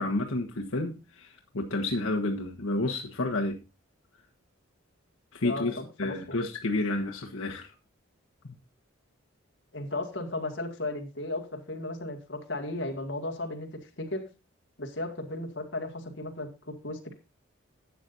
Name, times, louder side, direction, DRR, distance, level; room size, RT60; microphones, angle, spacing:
voice 1, 0.0-3.6 5.3-7.7 8.4-8.5, left 2 dB, 85° left, 1.3 m, -30 dB
voice 2, 5.4-6.4 9.7-13.7 14.0-14.2 14.8-17.1, left 2 dB, 60° left, 2.1 m, -35 dB
12.0 x 8.5 x 2.6 m
head